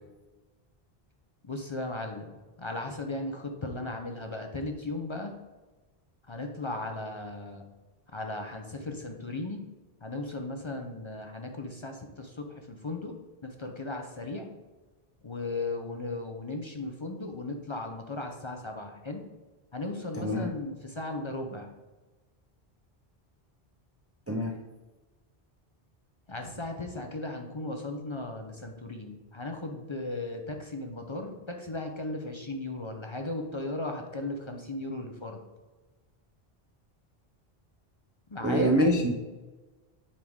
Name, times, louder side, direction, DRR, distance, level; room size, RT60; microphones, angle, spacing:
voice 1, 1.4-5.3 6.3-7.6 8.1-9.6 10.0-13.1 13.4-14.5 15.2-19.2 19.7-21.7 26.3-35.4 38.3-38.8, left 2 dB, 35° left, 3 dB, 0.5 m, -36 dB
voice 2, 20.2-20.5 24.3-24.5 38.4-39.1, equal, 25° right, 2 dB, 0.3 m, -25 dB
7.4 x 4.7 x 3.6 m, 1.2 s
omnidirectional pair, 1.0 m